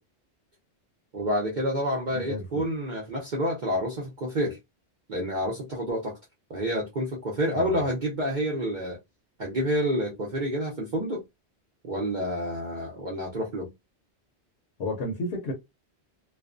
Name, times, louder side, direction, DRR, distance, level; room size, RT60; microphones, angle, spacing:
voice 1, 1.1-4.6 5.1-6.2 6.5-9.0 9.4-11.2 11.8-13.7, equal, 50° right, 0.7 m, -28 dB
voice 2, 2.1-2.7 7.5-7.8 14.8-15.5, left 1 dB, 70° left, 0.9 m, -32 dB
2.4 x 2.1 x 2.4 m
omnidirectional pair, 1.2 m